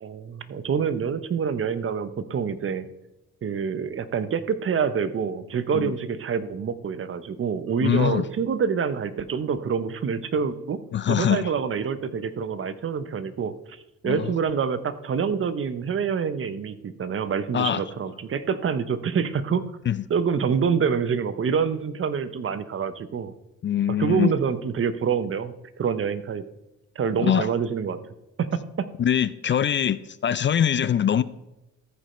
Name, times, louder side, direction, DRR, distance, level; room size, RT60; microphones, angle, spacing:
voice 1, 0.0-2.9 3.4-10.8 11.1-19.7 20.1-23.3 24.0-26.4 27.0-28.0 28.4-28.9, right 6 dB, 45° right, 14 dB, 0.8 m, -26 dB
voice 2, 7.8-8.2 10.9-11.5 14.0-14.2 17.5-17.8 19.9-20.0 23.6-24.3 27.2-27.5 29.0-31.2, left 9 dB, 40° left, 16 dB, 0.4 m, -23 dB
14.0 x 5.3 x 4.3 m, 0.94 s
cardioid pair, 90°, 30 cm